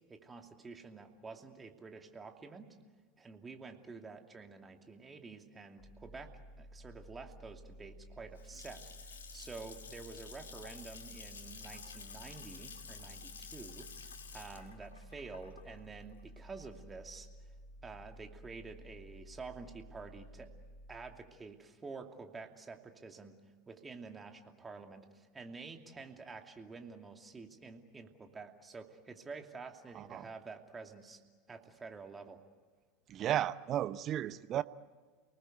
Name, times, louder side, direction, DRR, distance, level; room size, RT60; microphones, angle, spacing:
voice 1, 0.1-2.8 3.2-6.3 6.6-8.8 9.1-17.3 17.8-20.5 20.9-23.3 23.7-31.2 31.5-32.4, right 4 dB, 20° right, 4 dB, 2.7 m, -49 dB
sound 1, 5.8-21.6, equal, 35° left, 2.8 m, -54 dB
Water tap faucet / Sink (filling or washing) / Splash splatter, 8.1-17.0, left 6 dB, 80° left, 2.3 m, -51 dB
voice 2, 29.9-30.3 33.1-34.6, right 11 dB, 40° right, 15 dB, 0.8 m, -34 dB
29.5 x 19.5 x 8.2 m, 1.5 s
figure-of-eight pair, 80°, 0 cm